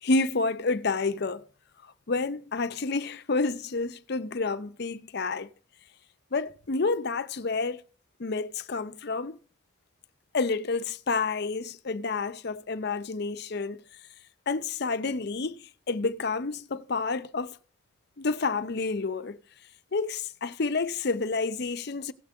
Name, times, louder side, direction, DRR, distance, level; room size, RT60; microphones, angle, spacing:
voice 1, 0.0-1.4 2.1-5.5 6.3-7.8 8.2-9.4 10.3-13.8 14.5-17.6 18.2-19.4 19.9-22.1, left 3 dB, 55° left, 0.6 m, -29 dB
16.0 x 7.8 x 3.6 m
head